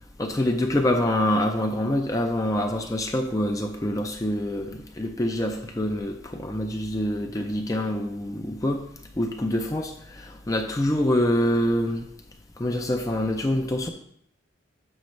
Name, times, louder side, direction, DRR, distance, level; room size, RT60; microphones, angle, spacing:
voice 1, 0.2-8.8 9.2-12.1 12.6-13.9, left 1 dB, 15° left, 3 dB, 0.4 m, -25 dB
6.8 x 6.3 x 3.1 m, 0.67 s
head